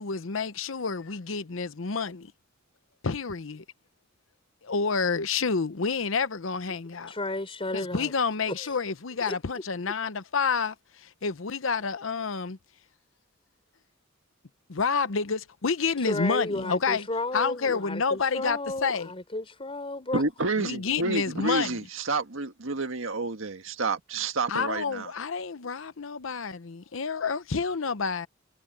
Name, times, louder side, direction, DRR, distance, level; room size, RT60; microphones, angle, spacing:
voice 1, 0.0-2.3 3.0-3.6 4.6-7.1 7.7-12.6 14.7-17.1 17.3-19.1 20.6-21.8 24.5-28.3, left 5 dB, 80° left, 0.8 m, -29 dB
voice 2, 7.1-8.1 8.5-8.7 9.3-9.6 16.0-20.2, left 2 dB, 30° left, 4.0 m, -33 dB
voice 3, 20.1-25.1, right 3 dB, 85° right, 1.7 m, -29 dB
head